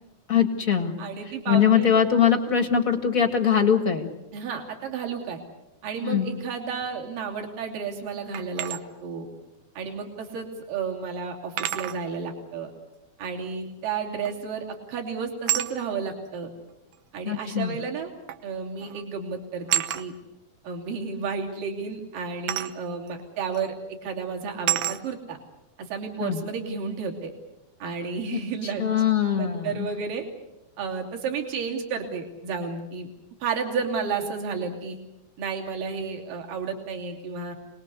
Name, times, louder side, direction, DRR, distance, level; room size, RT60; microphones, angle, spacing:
voice 1, 0.3-1.0 1.5-4.1 6.0-6.3 17.2-17.7 26.2-26.4 28.3-29.9, left 8 dB, 40° left, 4 dB, 1.2 m, -22 dB
voice 2, 1.0-1.9 4.3-5.4 5.8-9.3 9.8-12.7 13.2-16.5 17.1-18.1 18.4-20.1 20.6-25.4 25.8-27.3 27.8-28.9 29.3-30.2 30.8-33.1 33.4-35.0 35.4-37.6, right 5 dB, 60° right, 2 dB, 4.4 m, -32 dB
sound 1, 8.3-8.8 10.3-10.4 11.6-12.0 14.3-14.6 15.5-15.7 16.9-17.0 18.3-18.5 18.8-19.1 19.7-20.1 22.5-22.8 23.6-23.7 24.7-25.0, right 13 dB, 75° right, 2.9 m, -28 dB
27.5 x 20.5 x 8.3 m, 0.96 s
omnidirectional pair, 4.4 m